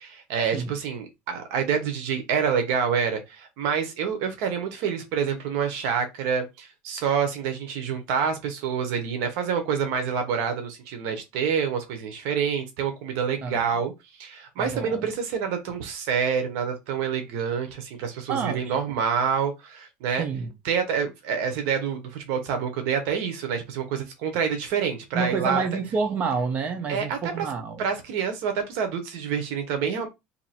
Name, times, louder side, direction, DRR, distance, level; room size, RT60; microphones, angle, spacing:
voice 1, 0.0-13.9 14.2-20.2 20.6-25.6 26.9-27.4 27.8-30.1, right 7 dB, 70° right, 1.0 m, -27 dB
voice 2, 14.6-15.1 18.3-18.7 20.2-20.5 25.1-27.8, right 5 dB, 35° right, 0.9 m, -28 dB
2.8 x 2.8 x 4.2 m
cardioid pair, 140°, 4 cm